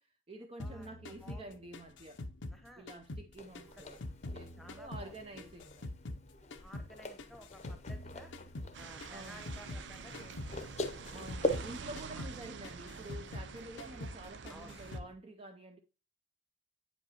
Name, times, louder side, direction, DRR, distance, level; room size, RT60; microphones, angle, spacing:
voice 1, 0.0-2.2 2.8-4.0 4.3-5.9 9.1-9.5 11.1-15.8, right 1 dB, 30° right, 0.5 m, -49 dB
sound 1, 0.6-3.3 3.5-6.2 6.5-9.9 10.1-10.6 10.8-13.5 13.8-14.2 14.5-15.1, left 1 dB, 90° left, 0.7 m, -45 dB
voice 2, 0.6-1.5 2.5-2.9 3.7-3.8 4.6-5.5 6.6-8.3 8.8-10.7 11.5-11.7 12.1-12.3 14.5-14.8, equal, ahead, 1.0 m, -55 dB
sound 2, 3.4-11.8, left 1 dB, 35° left, 0.7 m, -42 dB
sound 3, 8.7-15.0, right 5 dB, 80° right, 0.5 m, -47 dB
8.7 x 5.2 x 2.9 m
head